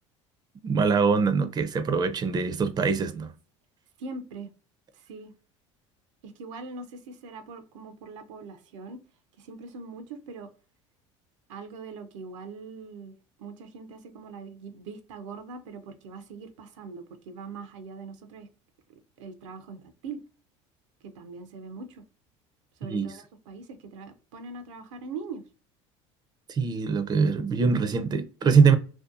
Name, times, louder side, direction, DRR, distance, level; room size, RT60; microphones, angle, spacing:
voice 1, 0.6-3.3 22.9-23.1 26.5-28.8, right 5 dB, 25° right, 0.4 m, -23 dB
voice 2, 4.0-4.5 4.9-5.3 6.2-9.0 9.4-10.5 11.5-18.5 19.2-20.2 21.0-22.0 22.8-25.4, right 4 dB, 85° right, 0.4 m, -42 dB
2.7 x 2.2 x 2.3 m
hypercardioid pair, 80°, 15 cm